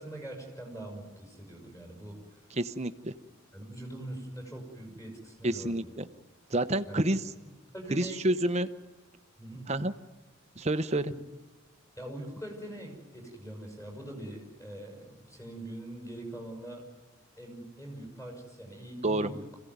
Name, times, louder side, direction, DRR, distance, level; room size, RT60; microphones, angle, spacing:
voice 1, 0.0-2.4 3.5-5.9 6.9-7.1 7.7-8.5 9.4-9.7 11.1-11.2 12.0-16.8 17.3-19.5, right 1 dB, 15° left, 0 dB, 6.2 m, -43 dB
voice 2, 2.5-3.1 5.4-6.0 6.5-7.2 7.9-8.7 9.7-9.9 10.6-11.1 19.0-19.3, right 1 dB, 30° right, 10 dB, 0.9 m, -28 dB
26.5 x 16.5 x 9.4 m, 1.2 s
head